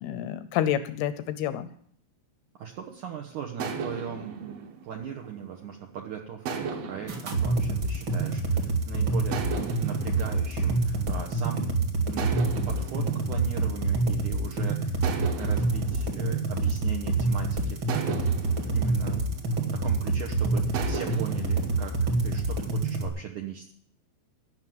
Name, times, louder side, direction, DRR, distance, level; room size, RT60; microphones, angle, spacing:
voice 1, 0.0-1.7, left 10 dB, 80° left, 12 dB, 2.3 m, -29 dB
voice 2, 2.5-15.0 15.3-18.0 18.3-19.3 19.7-21.9 22.2-23.7, right 8 dB, 85° right, 2 dB, 1.7 m, -39 dB
sound 1, 3.6-5.9 6.5-8.7 9.3-11.6 12.2-14.4 15.0-17.3 17.9-20.1 20.7-22.6, right 5 dB, 65° right, 2.9 m, -38 dB
sound 2, 7.1-23.1, right 3 dB, 45° right, 1.6 m, -27 dB
15.5 x 6.3 x 9.4 m, 0.63 s
omnidirectional pair, 5.3 m